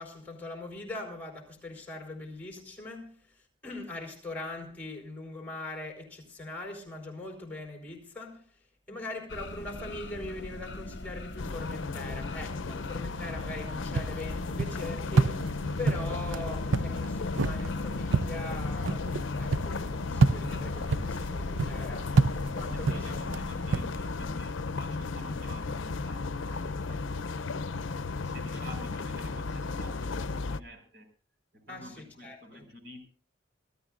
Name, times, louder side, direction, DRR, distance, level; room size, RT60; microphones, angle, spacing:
voice 1, 0.0-15.5 15.8-23.2 26.5-27.0 28.5-28.6 31.7-32.6, left 2 dB, 10° left, 3.9 m, -41 dB
sound 1, 9.3-24.4, left 2 dB, 60° left, 0.9 m, -41 dB
sound 2, 11.4-30.6, left 3 dB, 85° left, 0.6 m, -35 dB
sound 3, 13.9-23.9, right 4 dB, 85° right, 0.6 m, -29 dB
voice 2, 22.6-27.1 28.1-31.1 31.5-33.0, equal, 60° right, 5.5 m, -49 dB
26.0 x 14.5 x 2.5 m
head